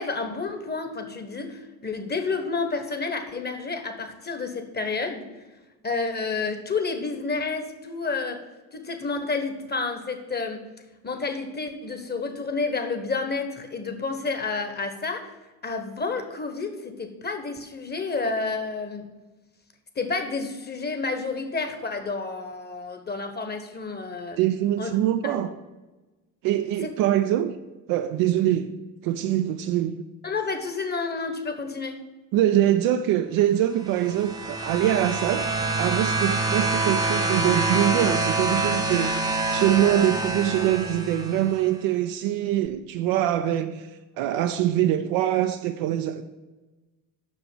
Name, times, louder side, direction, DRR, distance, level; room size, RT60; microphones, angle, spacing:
voice 1, 0.0-5.3 5.8-8.4 8.7-10.6 11.0-15.3 15.6-19.1 19.9-24.4 24.8-24.9 25.2-25.4 26.8-26.9 30.2-32.0, left 4 dB, 20° left, 1.2 m, -30 dB
voice 2, 24.4-25.5 26.4-27.5 27.9-28.7 29.0-30.0 32.3-35.5 35.8-39.1 39.5-43.9 44.2-46.2, right 12 dB, 45° right, 0.5 m, -23 dB
sound 1, 33.8-41.6 42.6-42.7, right 2 dB, 10° right, 0.8 m, -26 dB
7.2 x 6.6 x 6.1 m
figure-of-eight pair, 55°, 49 cm